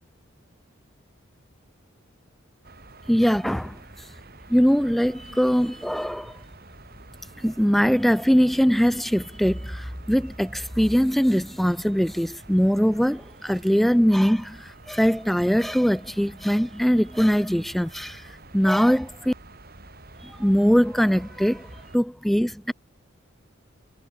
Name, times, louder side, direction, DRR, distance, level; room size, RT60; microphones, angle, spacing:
sound 1, 2.6-22.0, right 2 dB, 50° right, 3.4 m, -48 dB
voice 1, 3.1-3.7 4.5-6.3 7.4-14.6 14.9-18.2 18.5-19.3 20.4-21.7 21.9-22.7, equal, ahead, 0.3 m, -21 dB
head